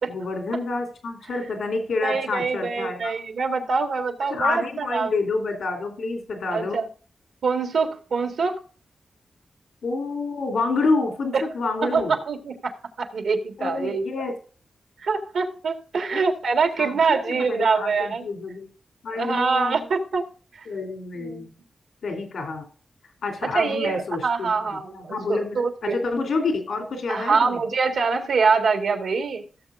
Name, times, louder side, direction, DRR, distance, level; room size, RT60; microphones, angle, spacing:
voice 1, 0.1-3.1 4.3-6.9 9.8-12.1 13.6-14.3 16.1-16.2 16.8-18.7 19.0-19.8 20.7-21.5 22.0-22.7 23.2-27.6, left 3 dB, 90° left, 3.0 m, -28 dB
voice 2, 2.0-5.1 6.5-6.9 7.4-8.6 11.3-11.4 11.9-14.0 15.0-18.2 19.1-20.2 21.2-21.4 23.5-26.0 27.1-29.4, right 4 dB, 85° right, 1.7 m, -24 dB
16.5 x 7.0 x 2.5 m
wide cardioid pair, 105°, 0 cm